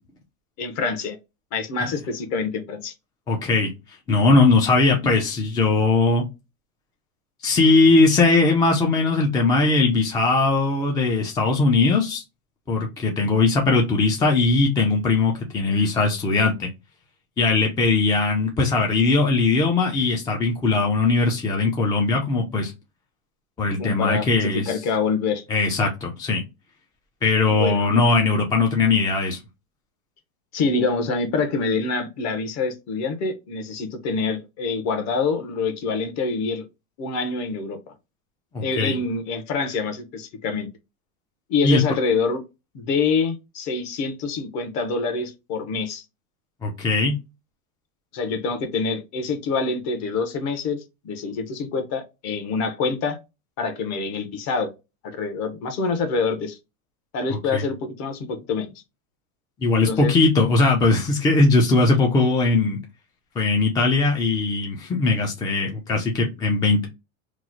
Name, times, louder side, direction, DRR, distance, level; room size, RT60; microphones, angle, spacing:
voice 1, 0.6-1.2 1.5-2.9 23.8-25.4 27.4-28.0 30.5-36.7 37.0-37.8 38.6-40.7 41.5-42.4 42.7-46.0 48.1-53.2 53.6-54.7 55.0-56.6 57.1-58.7 59.9-60.1, left 4 dB, 40° left, 0.8 m, -26 dB
voice 2, 3.3-6.2 7.4-12.2 12.7-16.7 17.4-22.7 23.6-24.7 25.5-26.4 27.2-29.4 38.5-38.9 41.6-41.8 46.6-47.1 57.3-57.6 59.6-62.8 63.4-66.9, left 3 dB, 10° left, 0.3 m, -20 dB
3.1 x 2.0 x 3.7 m
supercardioid pair, 125°, 43 cm